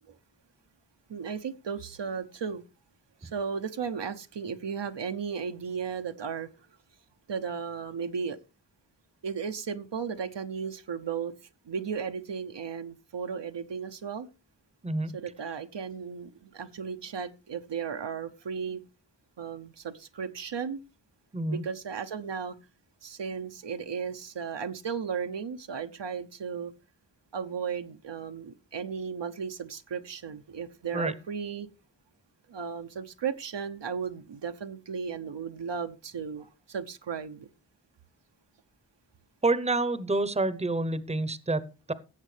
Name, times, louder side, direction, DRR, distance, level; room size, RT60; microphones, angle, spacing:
voice 1, 1.1-2.6 3.2-6.5 7.3-8.4 9.2-11.3 11.7-14.3 15.1-18.8 19.4-20.8 21.5-22.6 23.0-26.7 27.3-31.7 32.5-37.5, right 6 dB, 70° right, 0.8 m, -35 dB
voice 2, 14.8-15.2 21.3-21.6 30.9-31.1 39.4-41.9, right 2 dB, 15° right, 0.8 m, -28 dB
17.5 x 7.5 x 3.3 m
wide cardioid pair, 60°, 44 cm